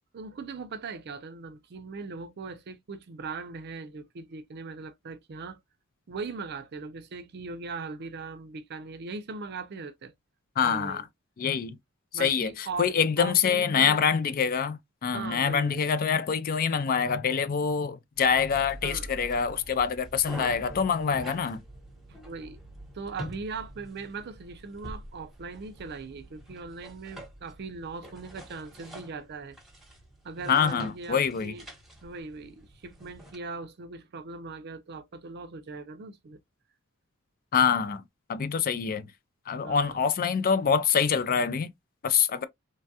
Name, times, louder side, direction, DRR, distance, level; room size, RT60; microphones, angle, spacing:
voice 1, 0.1-5.6 6.1-10.1 10.6-11.0 12.1-14.0 15.1-15.9 18.8-19.1 22.1-22.6 22.9-29.6 30.2-31.6 32.0-36.4 39.6-40.1, right 4 dB, 50° right, 0.5 m, -39 dB
voice 2, 10.6-11.0 11.4-11.8 12.1-21.6 30.5-31.5 37.5-38.0 38.3-39.1 39.5-41.7 42.0-42.4, left 6 dB, 45° left, 0.4 m, -25 dB
sound 1, 18.1-33.4, right 1 dB, ahead, 1.0 m, -45 dB
3.2 x 2.3 x 2.6 m
head